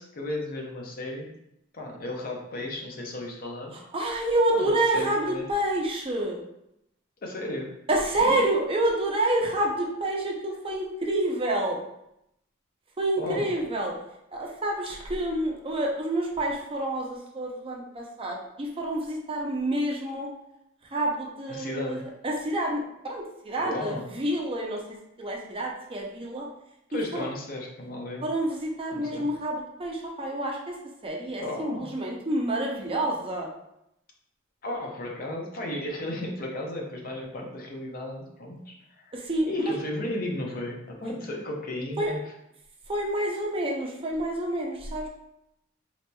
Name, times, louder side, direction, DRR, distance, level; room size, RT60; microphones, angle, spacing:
voice 1, 0.0-1.3 1.7-3.7 4.5-5.4 7.2-7.7 8.2-8.4 13.2-13.5 21.5-22.0 23.6-24.1 26.9-28.3 28.9-29.2 31.4-31.9 34.6-39.1 39.5-42.2, left 1 dB, 50° left, 0 dB, 0.6 m, -34 dB
voice 2, 3.7-6.4 7.9-11.8 13.0-13.9 14.3-20.3 20.9-24.8 25.2-26.5 26.9-27.3 28.2-33.5 39.1-39.7 42.0-42.1 42.9-45.1, right 1 dB, 30° right, -1 dB, 0.5 m, -28 dB
3.9 x 2.9 x 2.2 m, 0.80 s
head